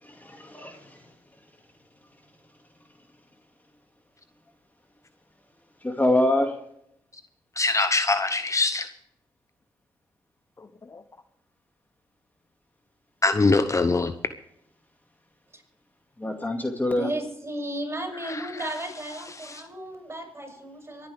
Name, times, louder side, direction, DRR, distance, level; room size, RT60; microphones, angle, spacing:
voice 1, 0.0-1.1 5.8-6.5 16.2-17.1, left 1 dB, 20° left, 4 dB, 2.3 m, -25 dB
voice 2, 7.6-8.9 13.2-14.1 18.3-18.4, left 3 dB, 35° left, 11 dB, 0.9 m, -22 dB
voice 3, 16.9-21.1, right 1 dB, 25° right, 3 dB, 6.7 m, -34 dB
24.5 x 10.0 x 3.5 m, 0.76 s
supercardioid pair, 45°, 10 cm